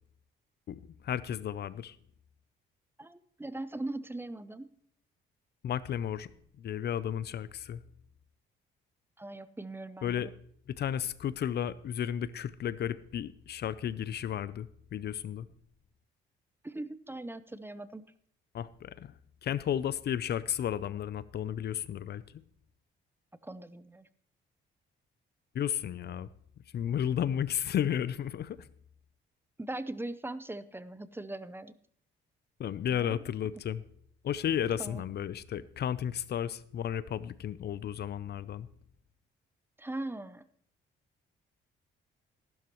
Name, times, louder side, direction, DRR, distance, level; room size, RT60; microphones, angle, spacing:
voice 1, 0.7-2.0 5.6-6.3 6.6-7.8 10.0-10.3 10.7-15.5 18.5-19.1 19.4-22.4 25.5-26.3 26.7-28.7 32.6-33.8 34.2-38.7, left 9 dB, 55° left, 0.5 m, -33 dB
voice 2, 3.0-4.7 9.2-10.3 16.6-18.0 23.4-24.1 29.6-31.7 32.9-33.2 34.8-35.0 39.8-40.4, right 2 dB, 10° right, 0.6 m, -40 dB
14.5 x 12.0 x 3.0 m
cardioid pair, 90°, 20 cm